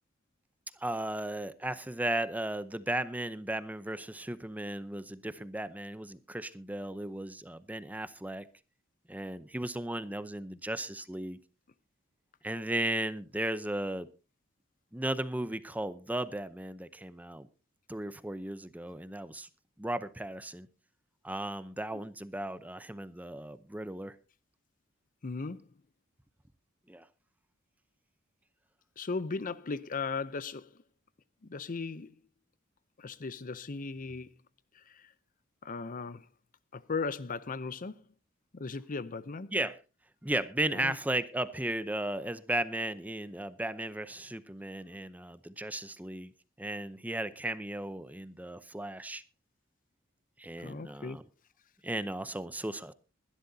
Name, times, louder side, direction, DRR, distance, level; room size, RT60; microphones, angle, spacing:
voice 1, 0.8-8.5 9.1-11.4 12.4-14.1 14.9-17.5 17.9-19.5 19.8-20.7 21.2-24.2 26.9-27.1 39.5-39.8 40.2-46.3 46.6-49.2 50.4-51.2 51.8-52.9, right 1 dB, 10° right, 0.7 m, -35 dB
voice 2, 25.2-25.7 29.0-30.7 31.4-32.1 33.0-34.3 34.7-35.1 35.6-36.3 36.7-38.0 38.5-39.5 40.7-41.0 50.6-51.2, left 4 dB, 40° left, 0.6 m, -37 dB
22.0 x 11.5 x 2.7 m
head